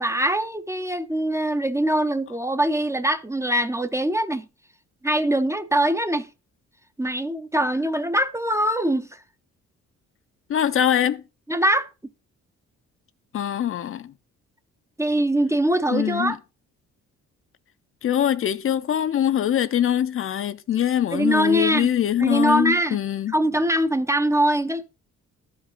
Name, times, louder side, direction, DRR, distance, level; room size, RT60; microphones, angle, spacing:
voice 1, 0.0-4.5 5.0-6.3 7.0-9.2 11.5-11.9 15.0-16.4 21.1-21.9 22.2-23.0 23.3-24.9, right 1 dB, 10° right, 0.5 m, -22 dB
voice 2, 10.5-11.2 13.3-14.1 15.9-16.4 18.0-23.3, left 10 dB, 45° left, 0.5 m, -23 dB
11.5 x 5.2 x 3.9 m
cardioid pair, 90°, 30 cm